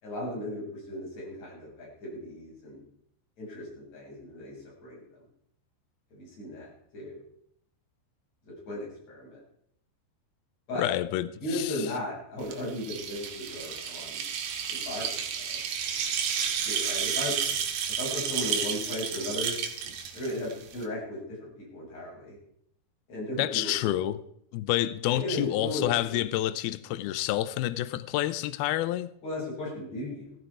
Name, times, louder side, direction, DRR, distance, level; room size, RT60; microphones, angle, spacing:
voice 1, 0.0-2.8 3.4-5.0 6.1-7.2 8.5-9.4 10.7-10.9 11.4-14.2 14.7-15.6 16.6-17.4 17.9-19.5 20.1-22.4 23.1-24.0 25.1-26.2 29.2-30.3, left 1 dB, 35° left, 8.0 m, -36 dB
voice 2, 10.8-11.9 23.4-24.2 24.5-29.1, left 14 dB, 90° left, 2.1 m, -28 dB
sound 1, 12.4-20.8, right 7 dB, 65° right, 3.6 m, -31 dB
17.0 x 14.0 x 4.9 m
omnidirectional pair, 5.2 m